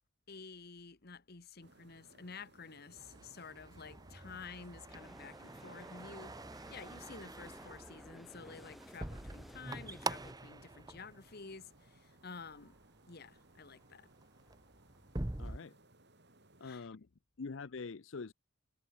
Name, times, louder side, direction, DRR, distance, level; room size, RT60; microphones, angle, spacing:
voice 1, 0.3-6.4 6.7-12.8 13.1-14.1 16.6-16.9, left 4 dB, 50° left, 1.2 m, -51 dB
sound 1, 1.6-16.7, right 2 dB, 55° right, 6.8 m, -64 dB
sound 2, 3.0-12.0 12.3-12.8 13.4-13.6 13.9-15.6, right 2 dB, 20° right, 1.0 m, -45 dB
sound 3, 4.9-10.3, equal, ahead, 1.1 m, -56 dB
voice 2, 15.4-15.8 16.6-17.1 17.4-18.3, left 4 dB, 65° left, 0.6 m, -44 dB
head